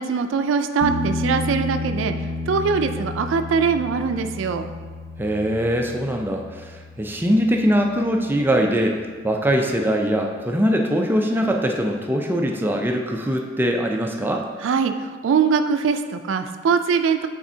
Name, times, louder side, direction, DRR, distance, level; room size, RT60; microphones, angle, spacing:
voice 1, 0.0-2.1 2.5-4.7 14.6-17.3, right 5 dB, 90° right, 8 dB, 0.3 m, -22 dB
sound 1, 0.8-8.4 11.5-11.6, left 2 dB, 75° left, 0.6 m, -31 dB
voice 2, 5.2-14.4, equal, 10° right, 2 dB, 0.4 m, -22 dB
8.6 x 4.1 x 2.7 m, 1.5 s
head